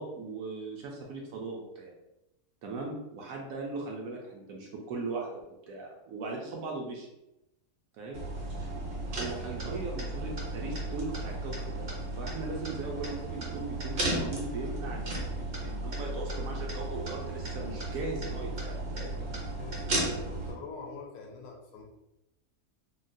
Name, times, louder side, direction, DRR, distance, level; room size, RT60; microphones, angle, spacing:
voice 1, 0.0-1.9 2.6-7.1 8.0-8.2 9.1-11.9 12.1-19.1, right 3 dB, 70° right, 0 dB, 0.9 m, -39 dB
sound 1, 8.1-20.5, right 2 dB, 50° right, 0.6 m, -35 dB
voice 2, 19.6-21.8, left 4 dB, 70° left, 0 dB, 1.0 m, -45 dB
3.7 x 2.0 x 2.6 m, 0.90 s
omnidirectional pair, 1.7 m